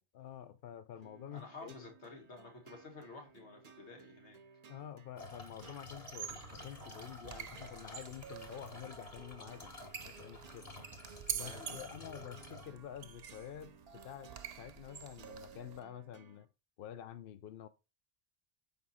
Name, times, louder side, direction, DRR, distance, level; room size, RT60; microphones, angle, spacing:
voice 1, 0.1-1.9 4.7-9.7 10.0-10.7 11.3-14.3 14.6-16.5 16.8-17.7, left 10 dB, 65° left, 0.8 m, -48 dB
sound 1, 1.0-16.5, right 5 dB, 45° right, 0.6 m, -60 dB
voice 2, 1.3-4.4 11.4-11.9, left 3 dB, 85° left, 2.1 m, -51 dB
sound 2, 5.1-12.7, left 2 dB, 35° left, 1.4 m, -51 dB
sound 3, 6.0-15.8, right 8 dB, 65° right, 0.9 m, -47 dB
7.0 x 4.7 x 4.2 m
omnidirectional pair, 1.1 m